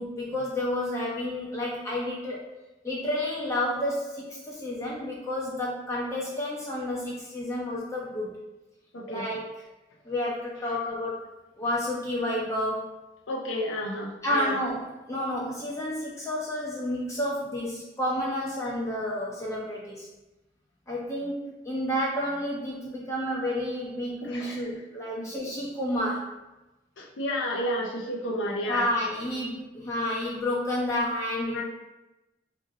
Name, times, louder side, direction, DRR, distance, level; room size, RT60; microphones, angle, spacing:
voice 1, 0.0-2.4 2.8-8.3 9.1-9.4 10.0-11.1 11.6-12.9 14.2-20.1 20.9-26.3 28.7-31.6, left 1 dB, 15° left, -4 dB, 0.4 m, -30 dB
voice 2, 8.9-9.3 13.3-14.5 24.2-24.7 25.2-25.3 27.0-28.9 31.5-31.6, equal, 90° left, -1 dB, 0.5 m, -31 dB
2.9 x 2.6 x 2.7 m, 1.0 s
head